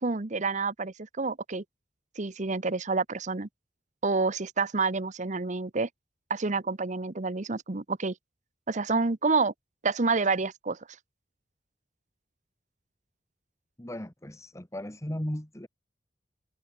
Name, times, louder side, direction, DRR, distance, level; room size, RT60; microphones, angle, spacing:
voice 1, 0.0-1.6 2.2-3.5 4.0-5.9 6.3-8.1 8.7-9.5 9.8-10.8, right 4 dB, 40° right, 0.9 m, -28 dB
voice 2, 13.8-15.7, equal, 15° left, 1.8 m, -36 dB
head